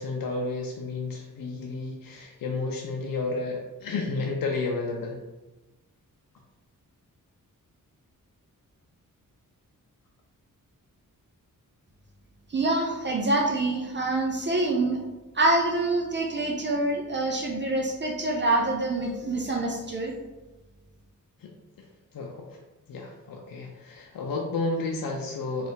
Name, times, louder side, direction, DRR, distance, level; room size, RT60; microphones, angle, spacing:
voice 1, 0.0-5.2 21.4-21.9 22.1-22.6 22.9-25.7, left 3 dB, 80° left, 0 dB, 0.6 m, -32 dB
voice 2, 12.5-15.0 15.3-20.1, right 2 dB, 35° right, 0 dB, 0.4 m, -26 dB
3.9 x 2.5 x 3.9 m, 1.1 s
wide cardioid pair, 180°, 34 cm